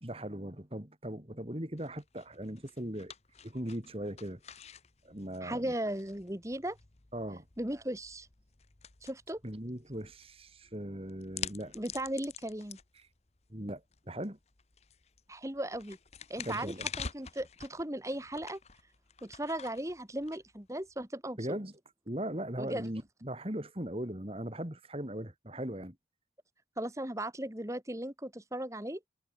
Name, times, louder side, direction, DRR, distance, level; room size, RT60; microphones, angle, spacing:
voice 1, 0.0-3.1 3.4-4.4 5.0-5.7 7.1-7.5 9.4-11.7 13.0-13.1 13.5-14.4 16.4-16.9 21.4-21.7 22.1-26.0, right 1 dB, 30° right, 2.8 m, -39 dB
sound 1, 1.8-21.0, left 7 dB, 35° left, 1.1 m, -48 dB
voice 2, 5.4-6.8 7.6-8.3 9.0-9.4 11.7-12.8 15.3-16.0 16.3-18.6 19.2-21.6 22.6-22.9 26.8-29.0, right 1 dB, 15° right, 1.9 m, -37 dB
head